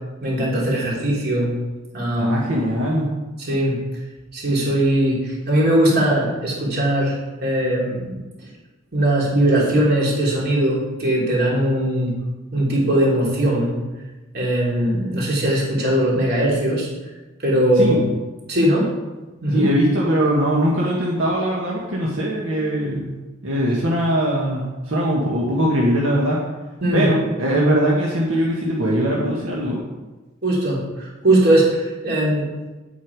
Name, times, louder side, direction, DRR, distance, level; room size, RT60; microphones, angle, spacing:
voice 1, 0.2-1.5 1.9-2.4 3.4-3.8 4.3-8.5 8.9-12.1 12.5-13.8 14.3-16.9 17.4-18.0 18.5-18.9 19.4-19.6 26.8-27.1 30.4-32.5, right 1 dB, 55° right, -4 dB, 3.2 m, -20 dB
voice 2, 2.2-3.1 17.7-18.0 19.5-23.2 23.4-26.4 26.9-29.8, equal, 80° right, -4 dB, 1.6 m, -21 dB
8.9 x 8.5 x 4.8 m, 1.2 s
head